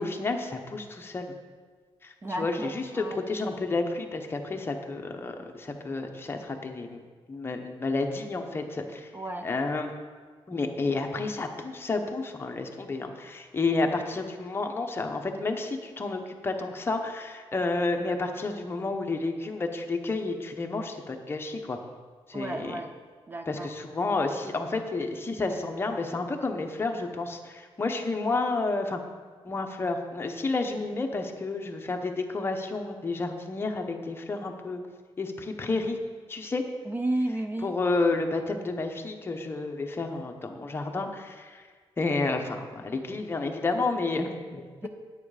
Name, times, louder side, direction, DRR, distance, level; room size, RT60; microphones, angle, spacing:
voice 1, 0.0-1.3 2.0-7.0 7.3-9.1 9.4-9.9 10.5-21.8 22.3-22.8 23.5-29.0 29.4-34.8 35.2-36.0 36.3-36.6 37.6-41.7 42.0-44.6, left 3 dB, 20° left, 3 dB, 0.9 m, -30 dB
voice 2, 2.2-3.2 9.1-9.5 22.3-22.9 23.3-23.7 36.9-37.7 44.8-44.9, right 1 dB, 20° right, 6 dB, 0.4 m, -32 dB
9.7 x 8.7 x 4.9 m, 1.5 s
wide cardioid pair, 175°, 10 cm